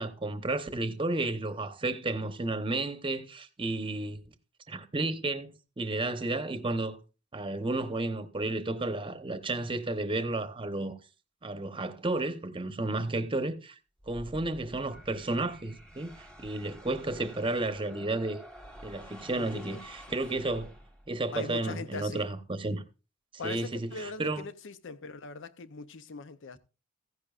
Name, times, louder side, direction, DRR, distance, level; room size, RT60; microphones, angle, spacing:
voice 1, 0.0-4.2 4.7-7.0 7.3-11.0 11.4-13.7 14.1-18.4 18.8-20.7 21.1-22.8 23.4-24.4, right 2 dB, 25° right, 0.9 m, -32 dB
sound 1, 14.0-21.2, equal, 5° left, 1.4 m, -49 dB
voice 2, 19.4-19.8 20.3-20.4 21.3-22.2 23.4-26.6, left 4 dB, 65° left, 0.7 m, -41 dB
15.0 x 10.5 x 2.4 m
head